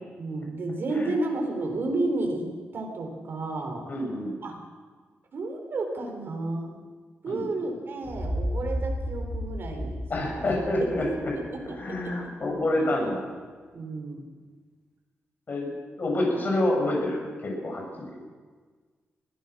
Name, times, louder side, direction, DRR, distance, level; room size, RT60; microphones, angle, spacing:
voice 1, 0.2-3.9 4.4-4.5 5.3-6.8 7.2-10.0 10.3-10.5 10.9-11.0 11.5-12.1 13.7-14.2, right 2 dB, 55° right, 3 dB, 4.6 m, -31 dB
voice 2, 3.9-4.4 7.3-7.5 10.1-11.3 11.7-13.2 15.5-15.7 16.0-18.2, left 1 dB, 40° left, 0 dB, 7.6 m, -27 dB
sound 1, 8.0-11.9, equal, 10° right, 7.2 m, -33 dB
24.0 x 16.5 x 6.4 m, 1.5 s
wide cardioid pair, 130°, 5 cm